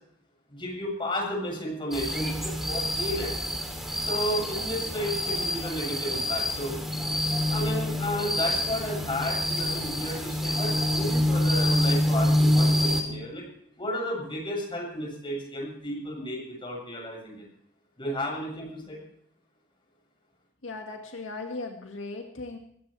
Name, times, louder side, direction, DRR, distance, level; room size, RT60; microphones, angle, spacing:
voice 1, 0.5-3.3 4.0-6.8 7.5-13.4 13.8-17.4 18.0-19.0, equal, 25° left, -2 dB, 7.7 m, -33 dB
sound 1, 1.9-13.0, left 1 dB, ahead, 2.9 m, -26 dB
voice 2, 20.6-22.6, left 3 dB, 85° left, 2 dB, 2.0 m, -37 dB
21.5 x 17.0 x 3.4 m, 0.70 s
head